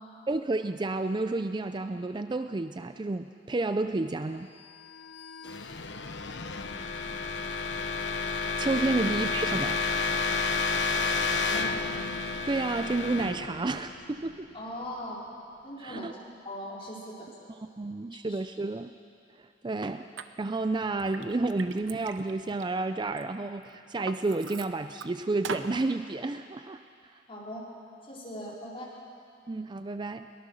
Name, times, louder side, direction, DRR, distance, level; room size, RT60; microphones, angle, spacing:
voice 1, 0.3-4.5 8.6-9.8 12.4-14.5 15.8-16.1 17.8-18.9 19.4-20.0 20.4-26.8 27.1-27.2 29.5-30.3, right 2 dB, 25° right, 9 dB, 0.4 m, -30 dB
sound 1, 4.8-14.5, left 4 dB, 70° left, 1.1 m, -31 dB
voice 2, 10.9-11.8 14.5-15.2 15.6-16.1 16.4-17.5 18.1-18.4 19.6-19.7 27.3-27.7 28.0-28.9, equal, 30° left, -5 dB, 4.4 m, -41 dB
Liquid, 20.2-20.3 20.8-23.2 23.6-25.1 25.4-25.7, right 5 dB, 85° right, 0.9 m, -40 dB
22.5 x 19.0 x 6.4 m, 2.5 s
head